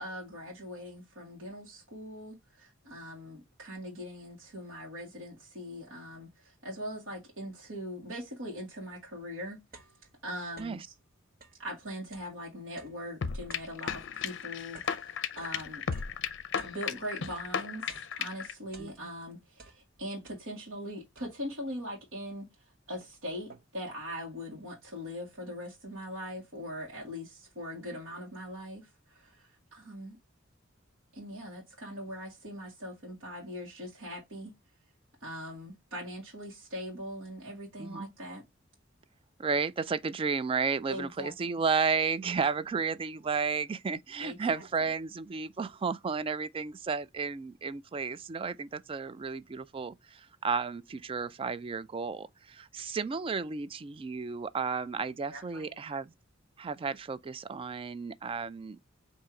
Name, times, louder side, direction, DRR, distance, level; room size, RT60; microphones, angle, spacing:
voice 1, 0.0-9.6 10.2-10.8 11.6-15.8 16.6-30.2 31.1-34.5 35.2-38.4 40.9-41.5 44.2-44.6 55.3-56.0, equal, 80° right, 1.5 m, -41 dB
sound 1, 9.7-10.9 11.3-17.6 17.9-19.3 19.5-20.8 21.2-21.7 22.3-22.4 22.7-23.9, right 3 dB, 50° right, 0.8 m, -56 dB
sound 2, 13.2-18.5, left 7 dB, 65° left, 0.5 m, -35 dB
voice 2, 39.4-56.1 56.6-58.8, right 5 dB, 25° right, 0.3 m, -33 dB
4.4 x 2.7 x 3.7 m
head